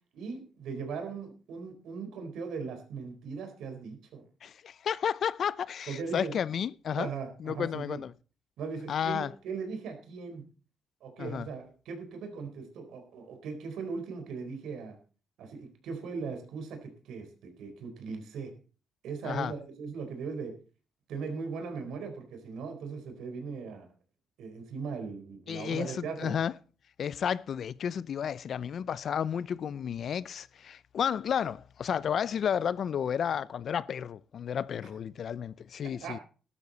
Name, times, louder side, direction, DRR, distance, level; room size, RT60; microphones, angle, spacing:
voice 1, 0.1-4.2 5.9-6.3 7.0-8.0 8.6-10.4 11.0-15.0 15.4-18.5 19.0-20.5 21.1-23.9 24.4-26.4 36.0-36.2, right 5 dB, 80° right, 4.1 m, -39 dB
voice 2, 4.4-7.1 7.4-8.1 8.9-9.3 11.2-11.5 19.2-19.5 25.5-26.5 27.0-36.2, left 8 dB, 60° left, 0.5 m, -32 dB
13.0 x 12.5 x 4.1 m
cardioid pair, 90°, 0 cm